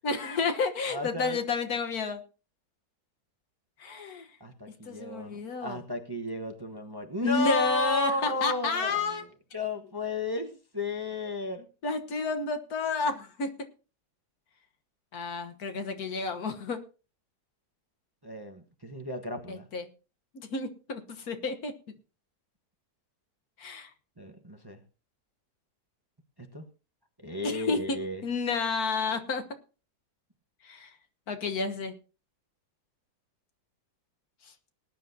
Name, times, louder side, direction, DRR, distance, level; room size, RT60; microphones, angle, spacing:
voice 1, 0.0-2.2 3.8-4.3 4.8-5.8 7.2-9.2 11.8-13.5 15.1-16.8 19.5-19.9 20.3-21.7 23.6-23.9 27.4-29.4 30.6-30.9 31.3-31.9 34.4-34.5, left 4 dB, 65° left, 8 dB, 1.7 m, -31 dB
voice 2, 0.9-1.4 4.4-9.2 9.5-10.5 10.7-11.6 18.2-19.7 24.2-24.8 26.4-26.6 27.2-28.2, left 2 dB, 15° right, 4 dB, 1.0 m, -33 dB
19.5 x 10.0 x 2.8 m, 0.33 s
omnidirectional pair, 1.7 m